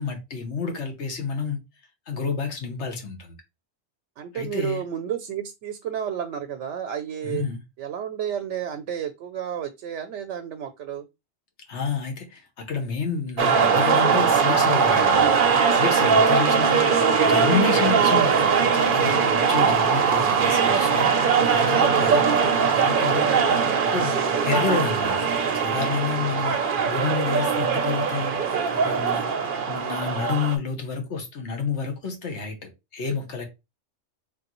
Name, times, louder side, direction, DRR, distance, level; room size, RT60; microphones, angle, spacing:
voice 1, 0.0-1.6 2.1-3.4 4.3-4.8 7.2-7.6 11.7-16.9 17.2-21.1 21.5-22.3 22.8-25.2 25.5-28.4 28.7-33.5, left 5 dB, 75° left, 1.3 m, -30 dB
voice 2, 4.2-7.4 7.8-11.1 16.6-17.3 22.5-22.9, right 9 dB, 85° right, 0.9 m, -32 dB
sound 1, 13.4-30.6, right 6 dB, 55° right, 0.8 m, -21 dB
4.0 x 3.3 x 2.9 m
omnidirectional pair, 1.2 m